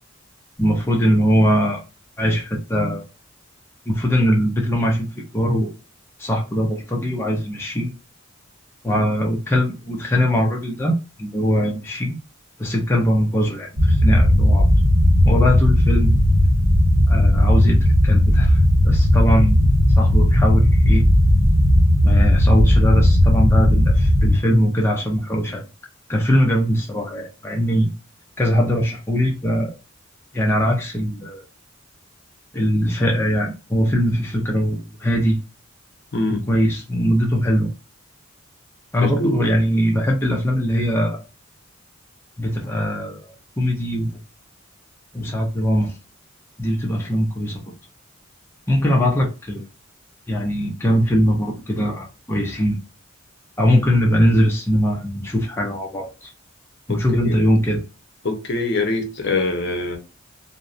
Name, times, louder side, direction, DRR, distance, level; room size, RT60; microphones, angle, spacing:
voice 1, 0.6-1.8 2.2-3.1 3.9-5.7 6.2-7.9 8.8-12.2 12.6-14.7 15.2-16.2 17.1-18.6 18.8-19.7 20.0-21.0 22.0-25.6 26.1-27.9 28.4-29.7 30.3-31.4 32.5-35.4 36.3-37.7 38.9-41.2 42.4-43.3 43.6-44.2 45.1-46.0 46.6-47.6 48.7-49.6 50.3-52.8 53.6-56.3 56.9-57.8, equal, 10° left, 0.4 m, -21 dB
sound 1, 13.8-24.4, left 1 dB, 70° right, 0.9 m, -15 dB
voice 2, 36.1-36.5 39.0-39.4 56.9-57.4 58.2-60.0, left 2 dB, 55° left, 0.6 m, -24 dB
2.6 x 2.0 x 2.4 m
head